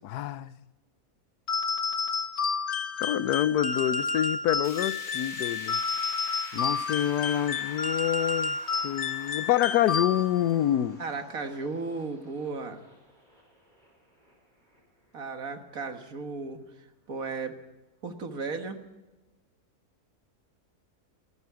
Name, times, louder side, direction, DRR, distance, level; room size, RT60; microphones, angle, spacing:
voice 1, 0.0-0.5 3.0-5.8 6.5-8.6 8.8-11.0, left 11 dB, 80° left, 1.2 m, -27 dB
sound 1, 1.5-10.5, left 5 dB, 45° left, 1.5 m, -30 dB
sound 2, 4.6-14.8 15.2-15.3 15.7-15.8 16.6-16.7, right 1 dB, 25° right, 5.2 m, -48 dB
voice 2, 11.0-12.8 15.1-16.6 17.1-17.6 18.0-18.8, right 4 dB, 65° right, 1.9 m, -35 dB
19.5 x 15.5 x 4.8 m
omnidirectional pair, 1.7 m